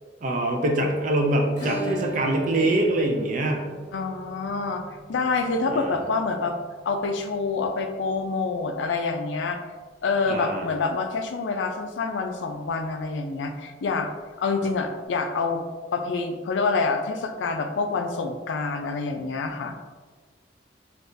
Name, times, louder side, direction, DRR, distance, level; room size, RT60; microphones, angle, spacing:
voice 1, 0.2-3.7 5.7-5.9 10.3-10.7, right 1 dB, 45° right, 2 dB, 0.4 m, -24 dB
Acoustic guitar / Strum, 1.6-10.2 10.4-10.5 10.8-10.9 11.3-11.4 13.4-13.5 14.6-14.7, right 2 dB, 45° left, 1.1 m, -38 dB
voice 2, 3.9-6.5 6.8-9.6 10.0-14.1 14.4-15.6 15.9-19.7, left 4 dB, 80° left, 5 dB, 0.4 m, -27 dB
3.4 x 2.3 x 2.6 m, 1.4 s
head